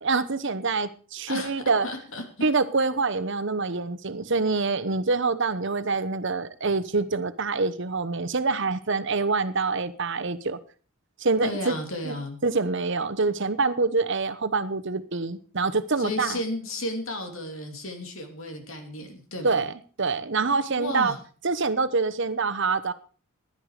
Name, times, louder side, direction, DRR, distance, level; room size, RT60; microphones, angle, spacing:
voice 1, 0.0-1.9 2.4-10.6 11.2-11.7 12.1-12.2 12.4-16.4 19.4-19.7 20.0-21.1 21.4-22.9, right 4 dB, 55° right, 12 dB, 1.0 m, -25 dB
voice 2, 1.8-2.5 11.4-12.4 16.0-19.7 20.8-21.2, left 1 dB, 65° left, 4 dB, 2.9 m, -33 dB
16.0 x 11.0 x 4.9 m, 0.41 s
head